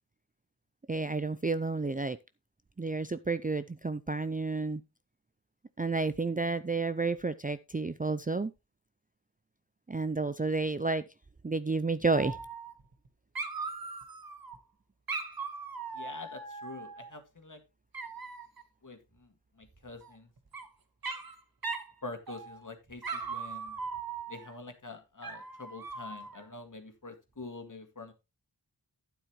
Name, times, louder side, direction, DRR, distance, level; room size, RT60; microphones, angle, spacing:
voice 1, 0.9-2.2 2.8-4.8 5.8-8.5 9.9-11.0 11.4-12.4, right 3 dB, 20° right, 12 dB, 0.5 m, -31 dB
Dog, 12.1-13.1 13.3-14.6 15.1-17.2 17.9-18.6 20.0-20.7 21.0-21.3 21.6-21.9 22.3-22.7 23.0-24.5 25.2-26.4, right 4 dB, 55° right, 1.5 m, -39 dB
voice 2, 15.9-17.6 18.8-19.3 19.6-20.3 22.0-23.8 24.3-28.1, left 3 dB, 45° left, 6 dB, 2.2 m, -46 dB
11.5 x 9.3 x 3.1 m, 0.24 s
wide cardioid pair, 60°, 43 cm